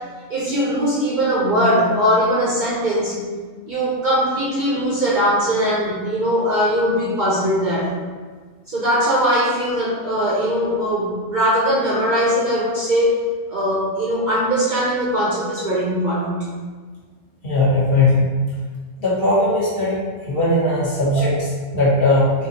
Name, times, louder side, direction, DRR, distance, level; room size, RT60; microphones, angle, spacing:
voice 1, 0.3-3.1 3.7-7.9 8.7-13.1 13.5-16.4, equal, 50° right, -7 dB, 0.7 m, -20 dB
voice 2, 17.4-18.2 19.0-20.0 20.3-22.5, left 1 dB, 50° left, -8 dB, 1.3 m, -18 dB
4.0 x 2.7 x 2.8 m, 1.5 s
omnidirectional pair, 1.3 m